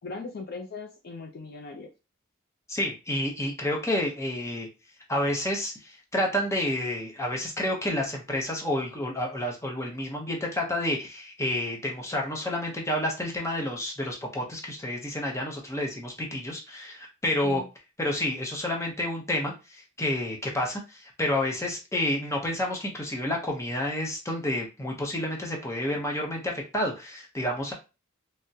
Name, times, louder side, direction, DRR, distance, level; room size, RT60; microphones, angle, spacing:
voice 1, 0.0-1.9 17.4-17.7, left 3 dB, 50° left, 3 dB, 0.4 m, -39 dB
voice 2, 2.7-4.7 5.1-17.6 18.0-27.7, left 1 dB, 15° left, 0 dB, 0.7 m, -29 dB
3.5 x 2.1 x 2.7 m, 0.28 s
head